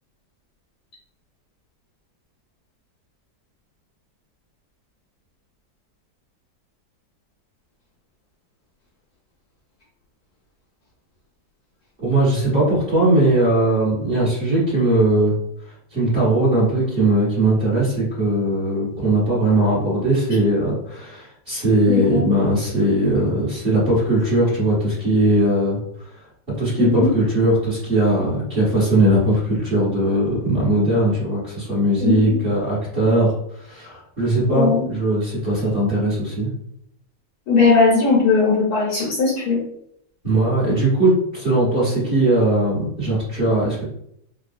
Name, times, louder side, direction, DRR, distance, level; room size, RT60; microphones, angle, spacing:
voice 1, 12.0-15.3 15.9-26.1 26.6-36.5 40.2-43.8, right 1 dB, 35° right, -9 dB, 1.5 m, -19 dB
voice 2, 21.9-22.3 26.8-27.1 32.0-32.3 34.5-34.8 37.5-39.6, left 4 dB, 60° left, -4 dB, 1.2 m, -18 dB
3.6 x 2.2 x 2.5 m, 0.73 s
omnidirectional pair, 2.0 m